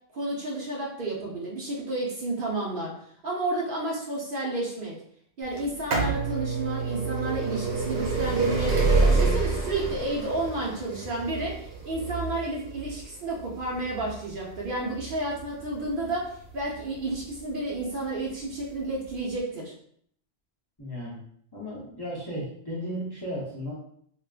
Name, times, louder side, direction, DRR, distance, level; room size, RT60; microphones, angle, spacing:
voice 1, 0.1-2.9 3.2-4.9 5.4-19.7, right 2 dB, 55° right, -3 dB, 0.8 m, -31 dB
sound 1, 5.6-17.2 18.0-18.1 19.1-19.2 19.4-19.5, right 3 dB, 80° right, 1.0 m, -27 dB
voice 2, 20.8-21.2 21.5-23.7, equal, 25° left, -7 dB, 0.7 m, -35 dB
3.4 x 2.4 x 2.3 m, 0.66 s
omnidirectional pair, 1.1 m